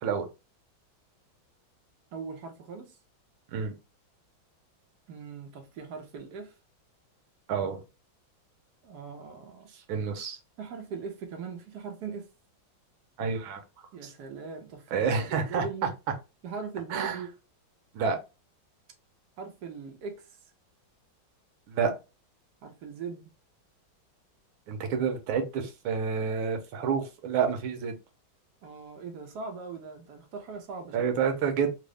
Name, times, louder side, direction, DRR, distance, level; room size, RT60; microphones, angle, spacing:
voice 1, 2.1-3.0 5.1-6.5 8.8-9.7 10.6-12.3 13.9-15.9 16.4-17.3 19.4-20.3 22.6-23.3 28.6-31.1, right 5 dB, 60° right, 1.2 m, -40 dB
voice 2, 7.5-7.8 9.9-10.4 13.2-13.6 14.0-14.1 14.9-15.9 16.9-17.2 17.9-18.2 21.7-21.9 24.7-27.9 30.9-31.8, right 6 dB, 80° right, 1.6 m, -29 dB
3.8 x 2.0 x 3.3 m
omnidirectional pair, 2.2 m